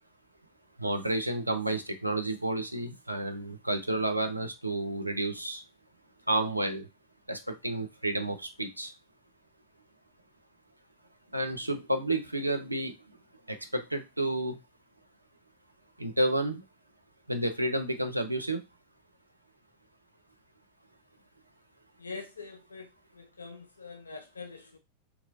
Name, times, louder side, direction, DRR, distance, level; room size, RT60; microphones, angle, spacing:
voice 1, 0.8-5.6 6.3-6.9 7.3-8.9 11.3-12.9 13.5-14.6 16.0-16.6 17.3-18.6, right 1 dB, 85° right, 0.4 m, -30 dB
voice 2, 22.0-22.9 23.1-24.8, left 4 dB, 75° left, 0.3 m, -44 dB
2.8 x 2.5 x 2.6 m
figure-of-eight pair, 90°, 0 cm